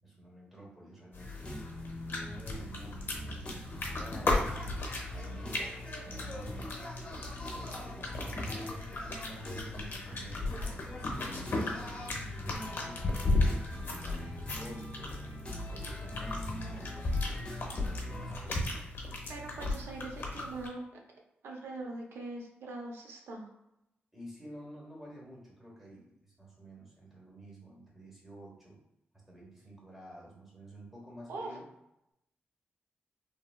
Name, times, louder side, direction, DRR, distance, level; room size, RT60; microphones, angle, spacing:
voice 1, 0.0-1.7 2.2-4.4 5.0-6.8 7.4-13.0 13.7-18.6 19.4-19.6 24.1-28.8 29.1-31.6, right 1 dB, 5° right, -4 dB, 1.1 m, -51 dB
sound 1, 1.1-20.7, left 2 dB, 60° left, 0.7 m, -36 dB
sound 2, 1.2-18.5, left 1 dB, 25° left, 0.7 m, -43 dB
voice 2, 19.3-20.8 21.4-23.5 31.3-31.5, right 2 dB, 85° right, 1 dB, 0.6 m, -42 dB
3.2 x 2.2 x 2.2 m, 0.86 s
cardioid pair, 90°, 4 cm